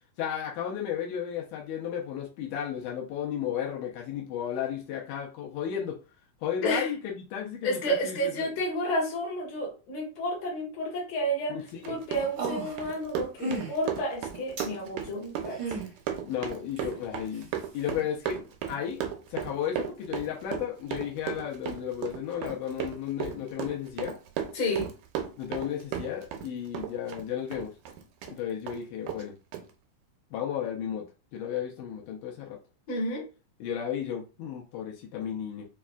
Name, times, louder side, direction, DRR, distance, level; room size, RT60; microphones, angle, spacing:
voice 1, 0.2-6.0 6.4-8.5 11.5-12.0 16.3-17.5 17.7-24.1 25.4-27.7 28.3-29.3 30.3-31.0 31.3-32.6 33.6-35.7, left 9 dB, 90° left, -1 dB, 2.2 m, -34 dB
voice 2, 7.6-11.6 11.8-15.6 24.5-24.9 32.9-33.2, equal, 60° left, -3 dB, 2.5 m, -30 dB
Run, 11.7-26.5 26.7-28.3 28.7-28.8 29.1-29.2 29.5-29.6, right 9 dB, 85° right, 2.0 m, -35 dB
sound 1, 12.2-12.9 13.4-13.7 14.6-14.7 15.5-15.9 16.8-16.9, right 3 dB, 65° right, 1.0 m, -33 dB
5.3 x 2.4 x 2.3 m, 0.32 s
omnidirectional pair, 3.6 m